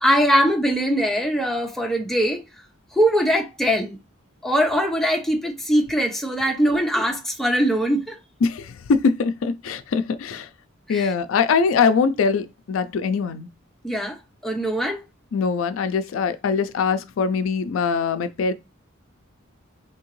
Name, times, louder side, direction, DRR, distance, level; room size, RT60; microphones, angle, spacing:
voice 1, 0.0-2.4 2.9-4.0 4.4-8.2 10.9-11.1 13.8-14.2 14.4-15.0, equal, ahead, 0.7 m, -21 dB
voice 2, 8.4-10.5 10.9-13.5 15.3-18.5, left 5 dB, 80° left, 0.4 m, -22 dB
3.5 x 2.8 x 3.1 m
head